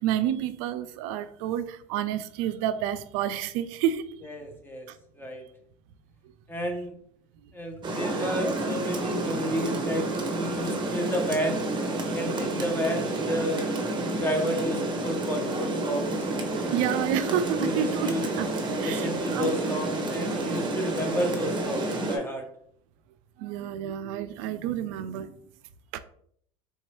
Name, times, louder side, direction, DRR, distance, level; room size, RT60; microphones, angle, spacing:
voice 1, 0.0-4.2 4.9-5.0 16.7-18.1 18.4-18.5 18.8-19.5 23.4-25.3 25.9-26.0, right 10 dB, 70° right, 0.4 m, -29 dB
voice 2, 4.2-4.9 5.2-5.4 6.5-6.9 7.5-11.6 12.1-13.7 14.2-16.2 16.5-16.8 17.6-18.3 18.8-22.5, equal, 10° left, 0.7 m, -31 dB
Rain, 7.8-22.2, right 2 dB, 25° right, 0.8 m, -30 dB
3.5 x 2.9 x 3.1 m
supercardioid pair, 100°, 18 cm